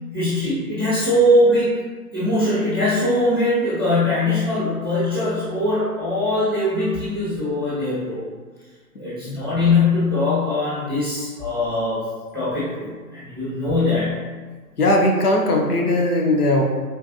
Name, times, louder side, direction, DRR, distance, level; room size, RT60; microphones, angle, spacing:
voice 1, 0.1-1.7 2.1-8.2 8.9-12.0 12.3-14.2, left 1 dB, 15° right, -14 dB, 0.5 m, -21 dB
voice 2, 14.8-16.6, left 1 dB, 65° left, 0 dB, 0.7 m, -18 dB
4.0 x 2.5 x 2.6 m, 1.4 s
figure-of-eight pair, 145°, 49 cm